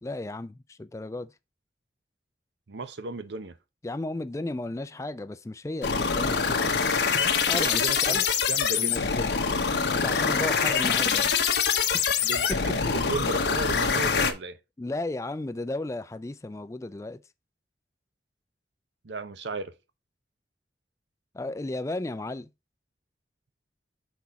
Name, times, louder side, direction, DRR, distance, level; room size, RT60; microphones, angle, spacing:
voice 1, 0.0-1.3 3.8-6.6 7.5-8.3 8.8-9.4 9.9-11.3 11.9-12.0 14.8-17.2 21.3-22.5, left 2 dB, 15° left, 0.3 m, -34 dB
voice 2, 2.7-3.6 7.5-8.2 8.5-9.1 12.2-14.6 19.0-19.7, right 3 dB, 90° right, 0.7 m, -35 dB
sound 1, 5.8-14.3, left 6 dB, 80° left, 1.0 m, -25 dB
6.1 x 4.2 x 4.7 m
head